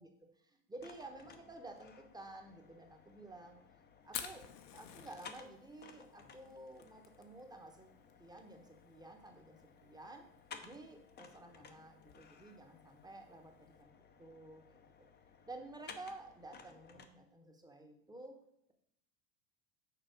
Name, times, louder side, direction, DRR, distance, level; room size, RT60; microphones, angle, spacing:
voice 1, 0.0-3.6 4.0-4.5 4.7-10.3 10.6-13.9 14.2-14.8 15.5-18.4, right 2 dB, 10° right, 4 dB, 1.0 m, -52 dB
sound 1, 0.8-17.1, left 6 dB, 20° left, 0.7 m, -58 dB
Fire, 4.0-13.8, left 9 dB, 80° left, 1.1 m, -52 dB
6.9 x 4.1 x 6.4 m, 0.75 s
supercardioid pair, 115°, 49 cm